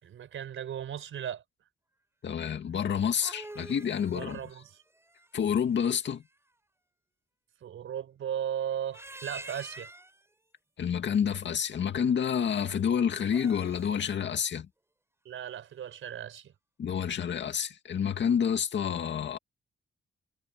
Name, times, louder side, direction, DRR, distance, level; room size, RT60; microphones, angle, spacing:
voice 1, 0.0-1.4 4.1-4.8 7.6-9.9 15.2-16.5, right 9 dB, 85° right, 4.7 m, -36 dB
voice 2, 2.2-4.4 5.3-6.2 10.8-14.7 16.8-19.4, left 7 dB, 65° left, 2.2 m, -28 dB
sound 1, 2.9-6.0 8.7-10.2 13.2-14.1, right 1 dB, 15° right, 8.0 m, -47 dB
wide cardioid pair, 115°, 20 cm